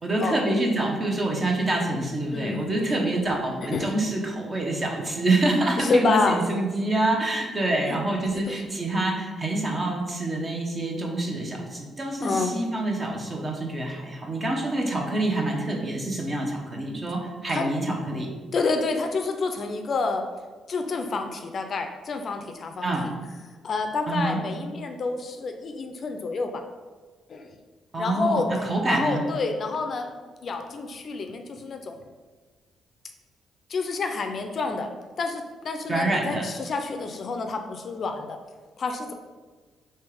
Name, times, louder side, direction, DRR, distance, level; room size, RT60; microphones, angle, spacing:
voice 1, 0.0-18.3 22.8-23.1 24.1-24.4 27.9-29.2 35.9-36.5, right 2 dB, 30° right, 0 dB, 0.9 m, -26 dB
voice 2, 2.3-2.6 3.7-3.9 5.8-6.4 7.9-8.0 8.5-8.6 12.2-12.5 17.5-17.7 18.5-20.2 20.7-23.1 23.6-26.6 27.3-27.6 28.0-28.5 28.9-30.1 30.4-32.0 33.7-34.9 35.2-38.4 38.8-39.1, left 3 dB, 50° left, 5 dB, 0.4 m, -28 dB
3.4 x 2.9 x 4.7 m, 1.3 s
cardioid pair, 90°, 0 cm